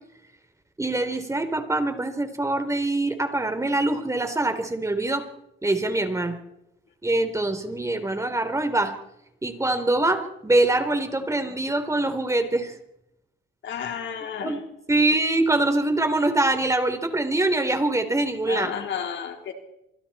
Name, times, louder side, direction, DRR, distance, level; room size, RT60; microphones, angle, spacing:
voice 1, 0.8-5.2 5.6-6.4 7.0-8.9 9.4-12.7 14.4-14.6 14.9-18.7, right 2 dB, 15° right, 7 dB, 3.7 m, -24 dB
voice 2, 13.6-14.6 18.5-19.5, left 8 dB, 70° left, 4 dB, 3.8 m, -32 dB
27.5 x 25.5 x 4.4 m, 0.84 s
cardioid pair, 90°, 20 cm